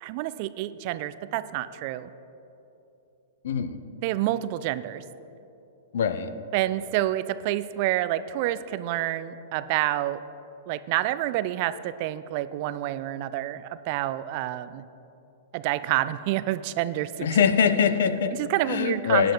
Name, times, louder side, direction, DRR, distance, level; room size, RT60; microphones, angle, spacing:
voice 1, 0.0-2.1 4.0-5.0 6.5-10.2 10.7-14.9 15.5-17.3 18.3-19.3, right 14 dB, 40° right, 14 dB, 0.3 m, -28 dB
voice 2, 3.4-3.8 5.9-6.3 17.2-18.4 18.7-19.3, left 7 dB, 60° left, 12 dB, 0.5 m, -23 dB
18.5 x 10.0 x 2.3 m, 3.0 s
figure-of-eight pair, 105°, 0 cm